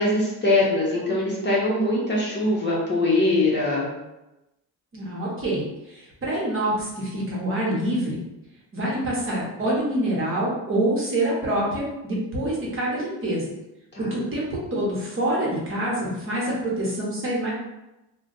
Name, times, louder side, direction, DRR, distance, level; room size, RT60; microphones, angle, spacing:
voice 1, 0.0-3.9 13.9-14.1, left 2 dB, 30° left, -5 dB, 0.8 m, -22 dB
voice 2, 4.9-5.6 5.9-8.2 8.7-13.5 14.0-14.4 14.7-17.5, right 1 dB, 35° right, -5 dB, 1.0 m, -26 dB
2.4 x 2.2 x 3.9 m, 0.95 s
cardioid pair, 120°, 39 cm